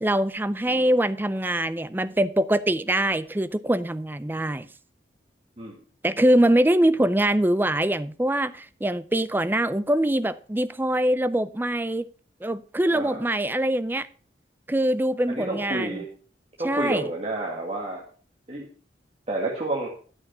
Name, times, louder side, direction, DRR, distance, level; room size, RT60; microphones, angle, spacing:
voice 1, 0.0-4.7 6.0-12.1 12.4-14.1 14.7-16.0 16.6-17.1, right 1 dB, 10° right, 0.4 m, -23 dB
voice 2, 12.9-13.3 15.3-16.1 16.6-18.0 18.5-18.7 19.3-19.9, right 2 dB, 35° right, 1.7 m, -30 dB
11.5 x 6.3 x 5.6 m
head